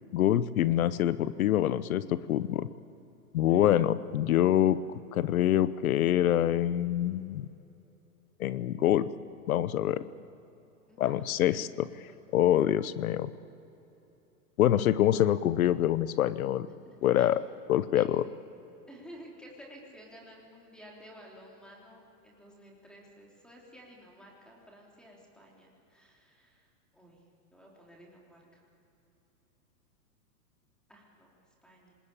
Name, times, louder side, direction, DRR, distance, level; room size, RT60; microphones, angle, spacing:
voice 1, 0.1-2.7 3.3-4.8 5.1-7.5 8.4-9.1 9.5-10.0 11.0-11.9 12.3-13.3 14.6-16.7 17.0-17.4 17.7-18.2, left 12 dB, 60° left, 16 dB, 0.9 m, -25 dB
voice 2, 10.9-11.6 12.2-12.3 16.9-17.3 18.0-18.1 18.9-27.2 27.5-28.6 30.9-31.4 31.6-32.0, equal, ahead, -2 dB, 3.6 m, -53 dB
25.5 x 20.5 x 8.7 m, 2.9 s
hypercardioid pair, 150°, 47 cm